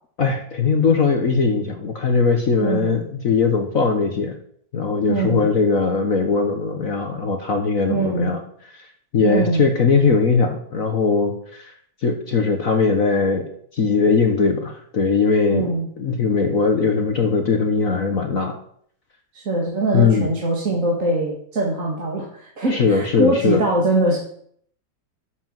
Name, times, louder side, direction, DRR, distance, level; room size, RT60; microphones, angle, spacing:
voice 1, 0.2-4.4 4.7-8.4 9.1-11.7 12.0-18.5 19.9-20.3 22.7-23.6, left 4 dB, 50° left, 5 dB, 1.5 m, -20 dB
voice 2, 2.6-3.0 5.1-5.5 7.9-8.3 9.2-9.6 15.5-15.9 19.3-24.2, right 2 dB, 40° right, -3 dB, 2.5 m, -22 dB
12.0 x 6.9 x 7.6 m, 0.63 s
omnidirectional pair, 2.1 m